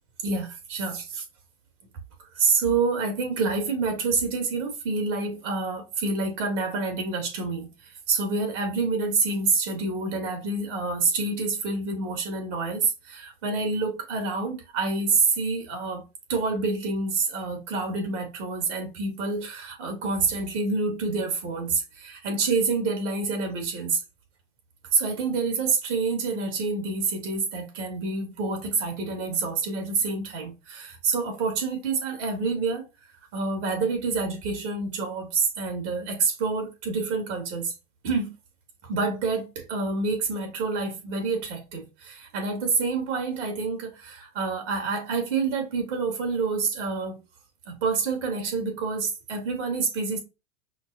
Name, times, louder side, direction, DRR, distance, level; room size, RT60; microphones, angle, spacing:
voice 1, 0.2-1.2 2.3-16.0 16.3-24.0 24.9-32.8 33.3-37.7 38.0-38.3 38.8-47.2 47.7-50.2, right 4 dB, 70° right, 2.2 m, -27 dB
5.6 x 2.3 x 2.7 m
hypercardioid pair, 110°, 38 cm